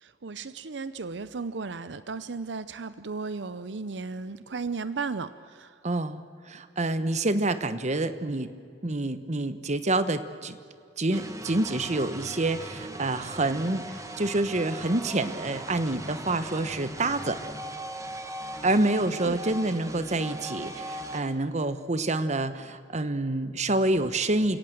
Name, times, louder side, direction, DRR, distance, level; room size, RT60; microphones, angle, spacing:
voice 1, 0.0-5.7 19.2-19.4, right 4 dB, 80° right, 14 dB, 0.7 m, -35 dB
voice 2, 5.8-6.2 6.5-8.5 8.8-10.6 11.0-17.4 18.6-24.6, right 2 dB, 40° right, 12 dB, 1.2 m, -27 dB
sound 1, 11.1-21.2, right 1 dB, 20° right, 1.8 m, -39 dB
29.5 x 17.5 x 7.9 m, 2.3 s
head